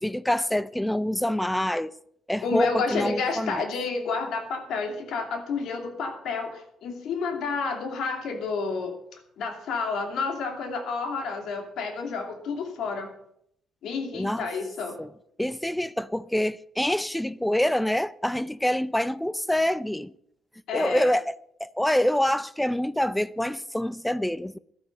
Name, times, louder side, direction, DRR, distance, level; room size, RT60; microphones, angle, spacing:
voice 1, 0.0-1.9 2.3-3.7 14.1-14.5 15.0-15.1 15.4-20.1 20.7-21.3 21.6-24.6, left 1 dB, 5° left, 0.5 m, -26 dB
voice 2, 2.4-13.1 13.8-15.0 20.7-21.1, left 4 dB, 75° left, 2.6 m, -30 dB
12.0 x 9.4 x 6.4 m
cardioid pair, 90°, 0 cm